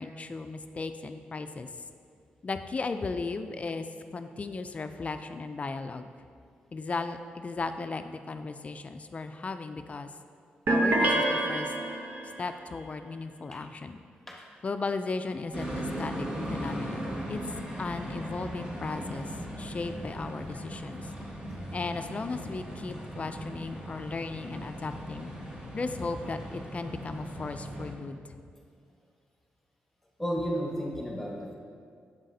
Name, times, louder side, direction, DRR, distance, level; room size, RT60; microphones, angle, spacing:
voice 1, 0.0-1.7 2.4-3.9 4.1-6.1 6.7-10.1 10.7-11.7 12.4-14.0 14.6-17.4 17.8-19.3 19.6-21.1 21.7-25.3 25.7-28.2, left 3 dB, 35° left, 9 dB, 0.3 m, -36 dB
sound 1, 10.7-12.4, right 1 dB, 60° right, 0.7 m, -26 dB
sound 2, 15.5-27.9, equal, 25° right, 1.3 m, -38 dB
voice 2, 30.2-31.5, equal, 5° left, -2 dB, 1.3 m, -32 dB
7.4 x 7.3 x 2.7 m, 2.3 s
cardioid pair, 75°, 4 cm